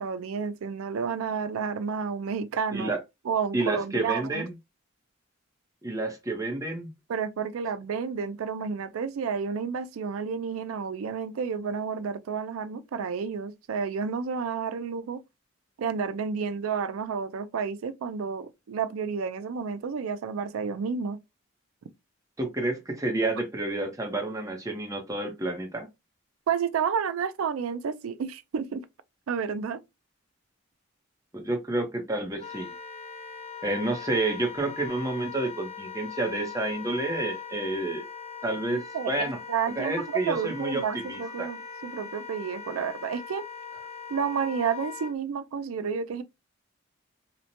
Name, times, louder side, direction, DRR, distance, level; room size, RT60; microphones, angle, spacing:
voice 1, 0.0-3.0 3.2-4.5 7.1-15.2 15.8-21.2 26.5-28.8 29.3-29.8 38.7-41.6 41.8-43.4 44.1-46.2, right 6 dB, 85° right, 0.4 m, -30 dB
voice 2, 3.5-4.5 5.8-6.9 22.4-25.9 31.3-32.7 33.6-38.0 38.4-39.4 39.7-41.5, right 2 dB, 15° right, 0.6 m, -30 dB
Wind instrument woodwind instrument, 32.4-45.1, left 6 dB, 30° left, 0.5 m, -40 dB
2.9 x 2.1 x 2.6 m
head